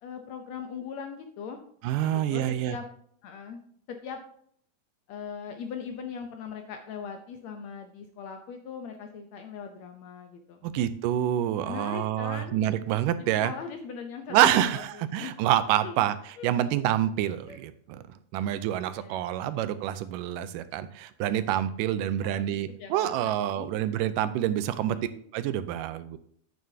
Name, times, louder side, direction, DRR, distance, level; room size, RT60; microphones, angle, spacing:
voice 1, 0.0-1.6 2.0-2.9 3.2-3.6 3.9-4.2 5.1-10.7 11.6-12.6 13.2-15.3 15.8-16.1 16.4-16.6 17.5-17.6 19.0-19.5 22.2-22.4 22.8-23.7 24.9-25.2, left 6 dB, 70° left, 5 dB, 1.7 m, -40 dB
voice 2, 1.8-2.7 10.6-13.5 14.3-16.2 16.4-18.0 18.3-25.0 25.3-26.2, right 12 dB, 85° right, 13 dB, 2.2 m, -27 dB
9.3 x 8.9 x 2.8 m, 0.62 s
omnidirectional pair, 3.7 m